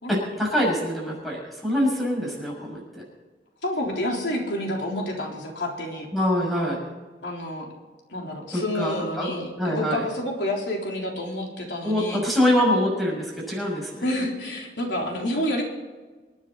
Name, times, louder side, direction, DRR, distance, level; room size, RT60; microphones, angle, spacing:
voice 1, 0.1-3.0 6.1-6.8 8.5-9.3 9.6-10.0 11.8-14.0, equal, ahead, -4 dB, 6.3 m, -24 dB
voice 2, 3.6-6.1 7.2-7.7 8.1-12.2 14.0-15.6, left 1 dB, 90° left, 0 dB, 3.7 m, -29 dB
26.5 x 10.0 x 4.1 m, 1.3 s
head